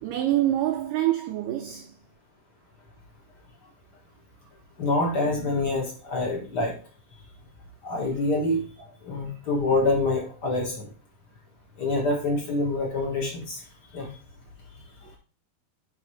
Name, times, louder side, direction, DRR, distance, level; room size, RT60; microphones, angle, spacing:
voice 1, 0.0-2.0 15.1-15.2, right 13 dB, 90° right, 1.8 m, -26 dB
voice 2, 4.8-6.7 7.8-8.7 9.0-10.9 11.8-13.6 13.9-14.1, left 2 dB, 60° left, 1.0 m, -26 dB
10.5 x 3.6 x 3.2 m
omnidirectional pair, 4.4 m